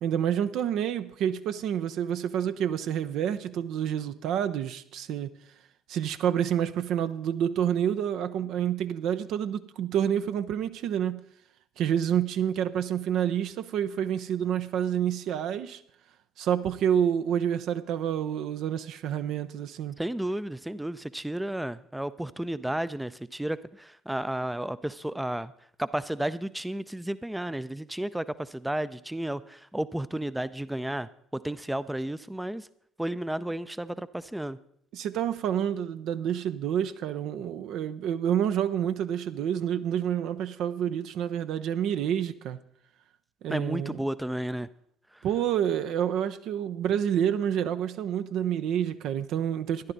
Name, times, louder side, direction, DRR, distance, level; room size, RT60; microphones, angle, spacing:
voice 1, 0.0-5.3 5.9-11.2 11.8-15.8 16.4-20.0 34.9-42.6 43.4-44.0 45.2-49.9, right 9 dB, 60° right, 0.6 m, -28 dB
voice 2, 20.0-25.5 25.8-32.7 33.0-34.6 43.5-44.7 45.1-45.3, right 1 dB, 5° right, 0.5 m, -32 dB
13.5 x 11.0 x 4.0 m
figure-of-eight pair, 55°, 0 cm